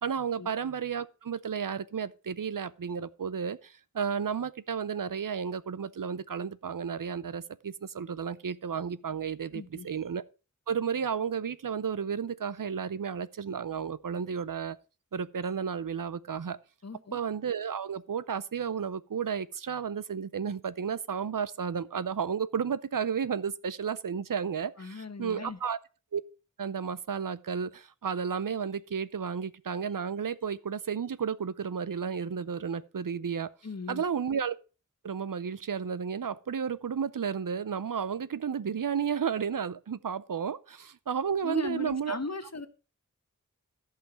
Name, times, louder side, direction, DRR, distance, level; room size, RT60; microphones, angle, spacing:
voice 1, 0.0-10.2 10.7-14.8 15.1-16.6 17.1-25.8 26.1-26.2 26.6-33.5 33.9-34.6 35.0-42.2, right 7 dB, 80° right, 0.6 m, -32 dB
voice 2, 9.5-9.9 16.8-17.2 24.8-25.6 33.6-34.0 41.4-42.7, left 3 dB, 50° left, 1.1 m, -38 dB
14.5 x 5.8 x 4.6 m
wide cardioid pair, 50°, 32 cm